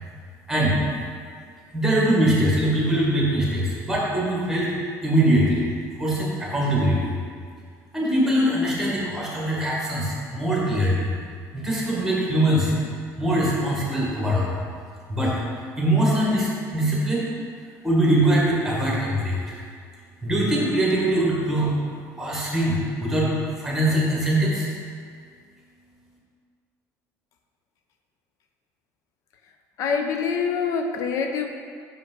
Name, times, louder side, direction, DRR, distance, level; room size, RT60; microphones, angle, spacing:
voice 1, 1.7-4.7 5.0-5.6 6.0-7.1 7.9-11.1 11.5-12.7 13.2-14.5 15.1-15.3 15.8-17.2 17.8-19.5 20.2-21.7 22.2-23.3 23.6-24.7, right 1 dB, 5° right, -5 dB, 1.3 m, -22 dB
voice 2, 29.8-31.5, left 6 dB, 50° left, 5 dB, 0.5 m, -25 dB
5.8 x 5.1 x 3.8 m, 2.1 s
cardioid pair, 160°, 7 cm